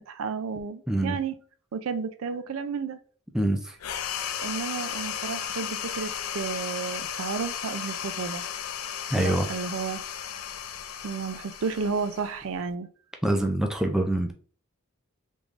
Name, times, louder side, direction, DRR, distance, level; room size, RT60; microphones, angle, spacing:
voice 1, 0.1-1.3 1.7-3.0 4.4-8.4 9.1-10.0 11.0-12.9, right 5 dB, 70° right, 10 dB, 0.4 m, -32 dB
voice 2, 3.3-3.8 9.1-9.5 13.2-14.3, right 1 dB, 5° right, 3 dB, 0.4 m, -25 dB
sound 1, 3.8-12.7, left 9 dB, 75° left, 0.4 m, -35 dB
3.6 x 3.2 x 2.5 m, 0.42 s
head